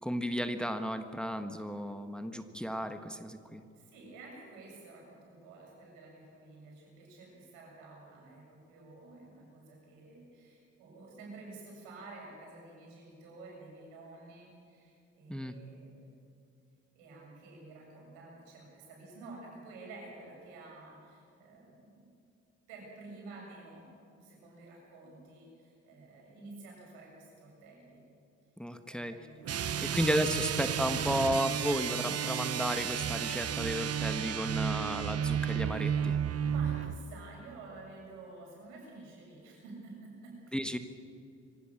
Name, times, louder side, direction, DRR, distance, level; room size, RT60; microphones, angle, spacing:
voice 1, 0.0-3.6 15.3-15.5 28.6-29.1 29.8-36.2 40.5-40.8, equal, 5° left, 8 dB, 1.6 m, -33 dB
voice 2, 3.7-16.0 16.9-22.1 22.7-28.0 28.9-29.9 36.5-40.5, right 3 dB, 85° right, -2 dB, 7.4 m, -51 dB
sound 1, 29.4-37.0, right 8 dB, 50° right, 1.0 m, -32 dB
25.0 x 16.5 x 7.4 m, 2.5 s
hypercardioid pair, 50°, 31 cm